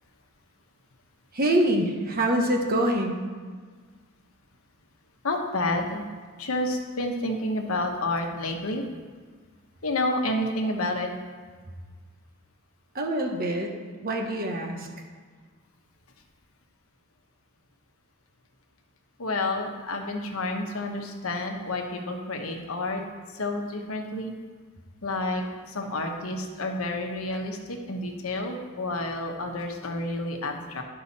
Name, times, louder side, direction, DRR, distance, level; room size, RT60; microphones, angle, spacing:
voice 1, 1.3-3.2 12.9-13.8 14.0-14.9, right 1 dB, 45° right, 2 dB, 1.2 m, -25 dB
voice 2, 5.2-6.0 6.4-8.8 9.8-11.1 19.2-23.0 23.3-24.3 25.0-30.8, left 2 dB, 85° left, 3 dB, 1.1 m, -29 dB
11.5 x 5.5 x 4.2 m, 1.6 s
head